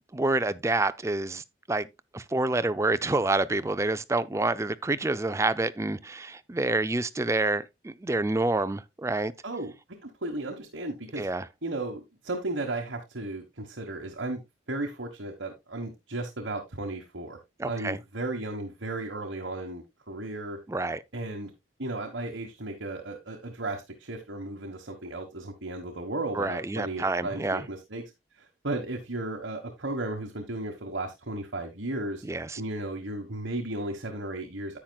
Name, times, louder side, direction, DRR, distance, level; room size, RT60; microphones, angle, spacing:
voice 1, 0.1-1.4 1.7-1.9 2.1-9.3 11.2-11.4 17.6-18.0 20.7-21.0 26.3-27.6 32.3-32.6, right 2 dB, 15° right, 0.4 m, -27 dB
voice 2, 9.4-9.7 10.0-11.3 11.6-14.4 14.7-17.4 17.6-20.6 21.1-21.5 21.8-28.0 28.4-32.2 32.6-34.8, right 2 dB, 65° right, 1.4 m, -35 dB
10.0 x 8.8 x 2.3 m
head